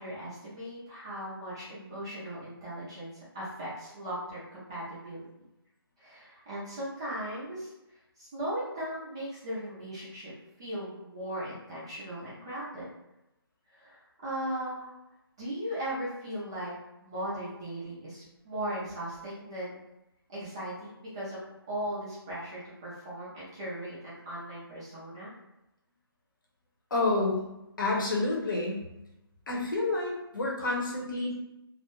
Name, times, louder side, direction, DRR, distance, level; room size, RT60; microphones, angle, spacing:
voice 1, 0.0-5.2 6.0-7.7 8.2-10.3 10.6-12.9 13.7-14.9 15.4-16.7 17.0-19.8 20.3-21.4 21.7-25.3, right 1 dB, 15° right, -9 dB, 0.4 m, -38 dB
voice 2, 26.9-27.5 27.8-28.8 29.5-31.4, left 2 dB, 55° left, -2 dB, 0.8 m, -29 dB
2.4 x 2.1 x 3.0 m, 0.90 s
hypercardioid pair, 165°, 13 cm